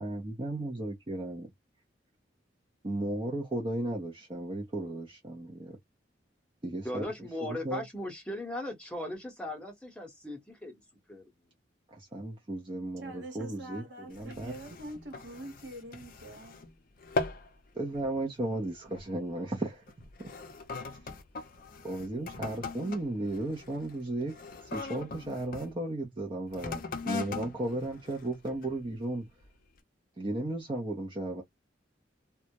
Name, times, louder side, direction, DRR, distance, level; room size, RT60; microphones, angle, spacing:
voice 1, 0.0-1.5 2.8-5.8 6.6-7.0 7.4-7.8 11.9-14.5 17.7-19.8 21.8-24.4 24.7-29.3 30.2-31.4, right 1 dB, 25° right, 0.5 m, -35 dB
voice 2, 6.8-10.7 11.1-11.2, left 1 dB, 5° left, 0.8 m, -38 dB
voice 3, 13.0-16.6, right 1 dB, 65° right, 1.1 m, -45 dB
sound 1, 14.1-16.7 17.0-17.5 17.9-18.2 18.9-19.1 19.9-25.7 26.5-28.8 29.4-29.5, left 3 dB, 50° left, 0.5 m, -40 dB
2.2 x 2.0 x 2.7 m
head